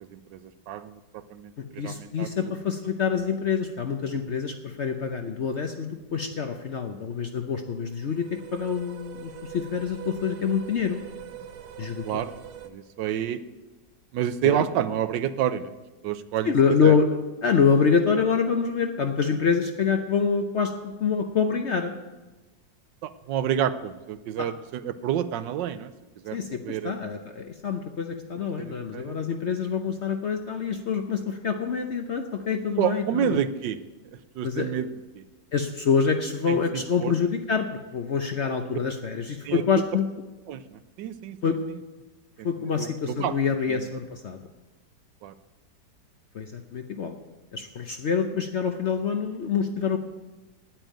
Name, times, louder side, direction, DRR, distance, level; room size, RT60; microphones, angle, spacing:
voice 1, 0.1-2.5 12.0-12.3 12.6-13.4 14.1-15.7 16.0-16.5 16.8-16.9 23.0-25.9 26.2-26.4 26.6-26.9 28.6-29.2 32.8-33.8 34.3-34.9 35.1-35.2 36.5-37.1 39.4-39.6 40.5-41.4 42.4-43.3 43.7-43.9 45.2-45.3, right 10 dB, 90° right, 12 dB, 1.3 m, -29 dB
voice 2, 1.8-11.0 11.8-12.1 14.4-14.7 16.4-17.2 17.4-21.9 24.4-24.5 26.3-33.4 34.4-34.7 35.5-40.1 41.4-41.5 42.4-44.4 46.3-47.2 47.5-50.0, left 6 dB, 55° left, 5 dB, 0.7 m, -26 dB
sound 1, 7.9-12.7, right 11 dB, 65° right, 1.2 m, -43 dB
9.0 x 9.0 x 9.1 m, 1.2 s
omnidirectional pair, 1.9 m